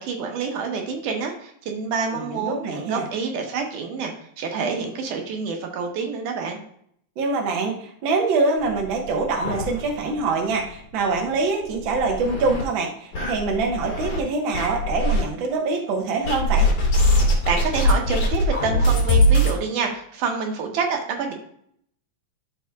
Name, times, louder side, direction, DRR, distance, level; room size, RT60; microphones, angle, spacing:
voice 1, 0.0-6.6 17.5-21.3, right 5 dB, 85° right, 2 dB, 2.7 m, -27 dB
voice 2, 2.1-3.0 7.2-16.7, right 3 dB, 55° right, 2 dB, 1.4 m, -24 dB
sound 1, 8.6-10.2 10.5-10.6 11.0-11.1 11.7-12.6 13.1-14.2 14.5-15.2 16.2-19.6, equal, 50° left, 3.4 m, -21 dB
12.5 x 4.9 x 2.3 m, 0.67 s
omnidirectional pair, 3.5 m